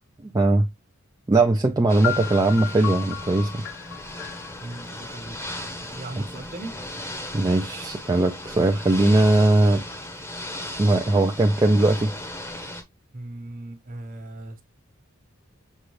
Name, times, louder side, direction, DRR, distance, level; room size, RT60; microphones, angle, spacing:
voice 1, 0.2-0.6 1.3-3.6 7.3-9.8 10.8-12.1, right 2 dB, 20° right, 0.4 m, -20 dB
Ocean / Boat Water vehicle, 1.9-12.8, left 1 dB, 10° left, 0.8 m, -37 dB
sound 1, 2.0-5.9, left 12 dB, 60° left, 0.5 m, -35 dB
voice 2, 4.6-6.7 13.1-14.6, right 2 dB, 40° right, 1.1 m, -38 dB
6.5 x 2.3 x 3.1 m
head